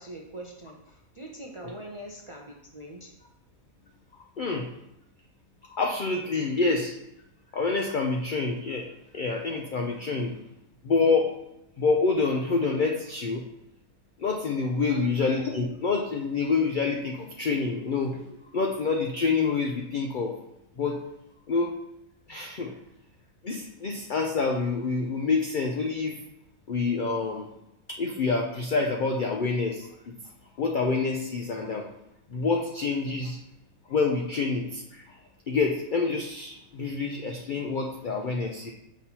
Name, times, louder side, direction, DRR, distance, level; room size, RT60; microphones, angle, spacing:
voice 1, 0.0-3.1 14.8-15.1, right 1 dB, 55° right, -1 dB, 0.3 m, -42 dB
voice 2, 4.4-4.7 5.7-7.0 7.5-8.9 9.1-10.4 10.8-11.4 11.8-13.4 14.2-18.3 18.5-20.4 20.8-21.0 21.5-21.7 22.3-22.7 23.4-26.2 26.7-27.5 27.9-30.1 30.6-31.9 32.3-33.4 33.9-35.2 35.5-38.7, left 4 dB, 85° left, 2 dB, 0.4 m, -27 dB
6.0 x 5.5 x 2.8 m, 0.88 s
omnidirectional pair, 1.5 m